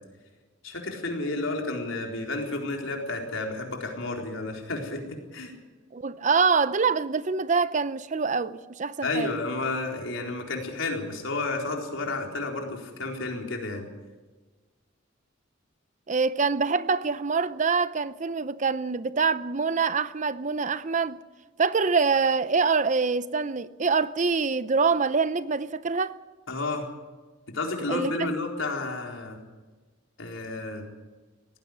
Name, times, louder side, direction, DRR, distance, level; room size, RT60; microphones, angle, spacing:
voice 1, 0.6-5.5 9.0-13.9 26.5-26.9 27.5-29.4 30.2-30.8, left 2 dB, 80° left, 4.2 m, -31 dB
voice 2, 5.9-9.3 16.1-21.2 21.6-26.2 27.9-28.3, right 5 dB, 40° right, 0.6 m, -25 dB
18.5 x 16.0 x 9.5 m
head